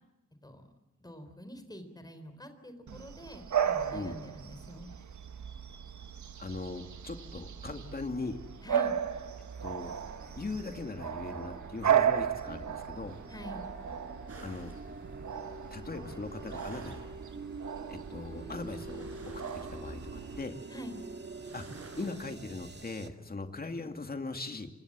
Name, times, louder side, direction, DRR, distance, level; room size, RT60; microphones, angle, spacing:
voice 1, 1.0-4.9 8.6-9.0 13.3-13.7 20.7-21.0, equal, 15° left, 8 dB, 4.0 m, -46 dB
Bark / Bird vocalization bird call bird song, 2.9-20.4, right 9 dB, 75° right, 1.5 m, -35 dB
voice 2, 6.4-8.4 9.6-10.0 10.4-13.2 14.4-14.8 15.7-17.0 17.9-19.1 19.5-20.6 21.5-21.6 22.0-24.7, left 3 dB, 30° left, 5 dB, 2.4 m, -39 dB
sound 1, 8.1-23.1, right 3 dB, 35° right, 2.0 m, -47 dB
sound 2, 14.3-22.8, right 3 dB, 50° right, 5.6 m, -52 dB
27.5 x 26.0 x 7.6 m, 1.0 s
wide cardioid pair, 165°, 30 cm